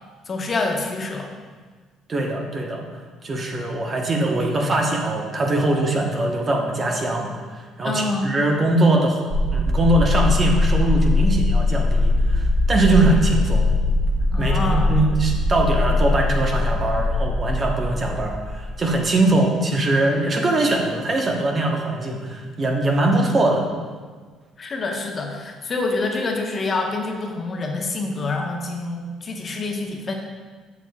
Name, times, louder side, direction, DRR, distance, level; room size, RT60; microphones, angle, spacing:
voice 1, 0.3-1.3 7.8-8.3 14.3-14.9 24.6-30.1, left 3 dB, 40° left, 1 dB, 0.9 m, -26 dB
voice 2, 2.1-2.9 3.2-9.2 9.5-13.6 14.4-23.7, right 2 dB, 35° right, 1 dB, 1.0 m, -21 dB
sound 1, 9.3-18.9, left 2 dB, 15° right, 1.4 m, -21 dB
7.2 x 6.9 x 2.4 m, 1.5 s
supercardioid pair, 85°, 0 cm